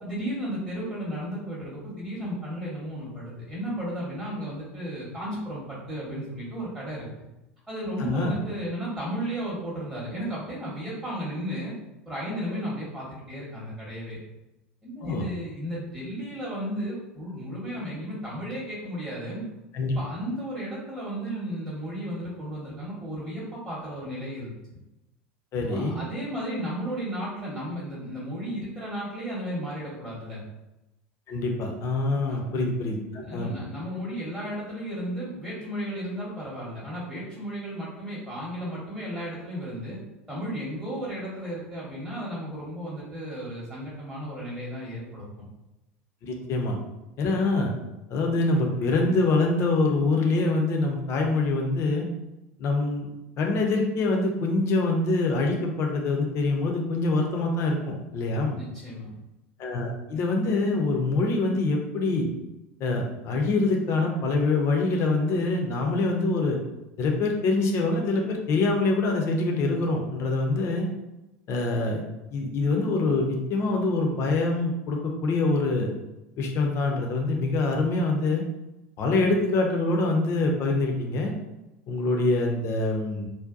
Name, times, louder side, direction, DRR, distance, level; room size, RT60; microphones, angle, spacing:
voice 1, 0.0-7.1 7.7-11.7 12.1-14.2 14.8-19.4 20.0-24.8 25.6-30.4 32.1-32.5 33.2-40.0 40.3-45.5 46.4-46.5 58.5-59.1, equal, 10° right, -8 dB, 0.9 m, -34 dB
voice 2, 8.0-8.3 15.0-15.3 19.7-20.0 25.5-25.9 31.3-33.6 46.2-46.7 47.2-47.7 48.1-52.1 52.6-53.1 53.4-58.6 59.6-62.3 62.8-66.6 67.0-70.9 71.5-72.0 72.3-75.9 76.4-78.4 79.0-81.3 81.9-83.3, left 2 dB, 40° left, 1 dB, 0.6 m, -25 dB
2.6 x 2.1 x 2.4 m, 0.97 s
figure-of-eight pair, 75°, 7 cm